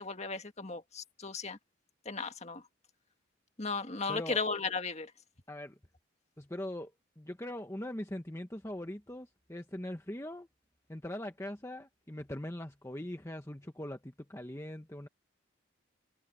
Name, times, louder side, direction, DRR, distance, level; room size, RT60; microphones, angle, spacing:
voice 1, 0.0-1.6 2.0-2.6 3.6-5.1, left 4 dB, 35° left, 1.8 m, -35 dB
voice 2, 4.1-4.4 5.5-5.8 6.4-6.9 7.2-10.5 10.9-15.1, left 1 dB, 15° left, 1.1 m, -41 dB
head